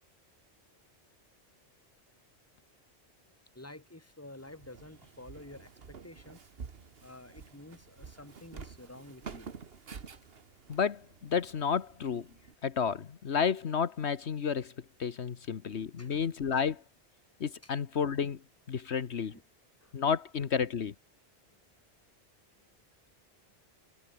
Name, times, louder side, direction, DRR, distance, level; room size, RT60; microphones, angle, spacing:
voice 1, 3.5-6.4 7.0-9.5 16.0-16.2 16.5-16.6 17.6-17.7 19.3-19.4 19.8-20.0, left 1 dB, 15° left, 2.3 m, -50 dB
Walk footsteps, 4.4-12.5, right 5 dB, 60° right, 1.6 m, -49 dB
voice 2, 10.7-12.3 12.6-14.7 15.0-16.8 17.4-18.4 18.7-19.4 19.9-20.9, left 6 dB, 70° left, 1.4 m, -31 dB
omnidirectional pair, 1.2 m